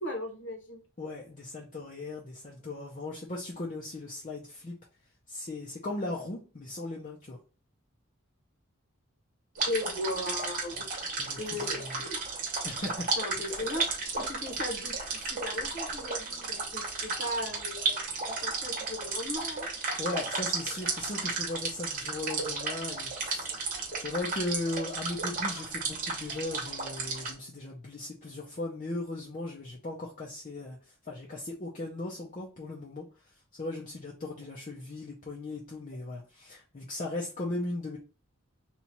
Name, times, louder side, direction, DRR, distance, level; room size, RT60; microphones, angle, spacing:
voice 1, 0.0-0.8 9.7-10.9 11.4-12.2 13.2-13.9 14.1-18.1 18.4-19.7, left 1 dB, 55° left, 2 dB, 1.0 m, -37 dB
voice 2, 1.0-4.8 5.3-7.4 10.7-10.8 11.2-12.0 12.6-13.1 13.3-13.7 20.0-30.8 31.1-33.1 33.6-38.0, left 2 dB, 35° left, -3 dB, 0.5 m, -38 dB
sound 1, 9.6-27.3, right 4 dB, 40° right, 0.9 m, -34 dB
2.9 x 2.4 x 4.1 m, 0.36 s
head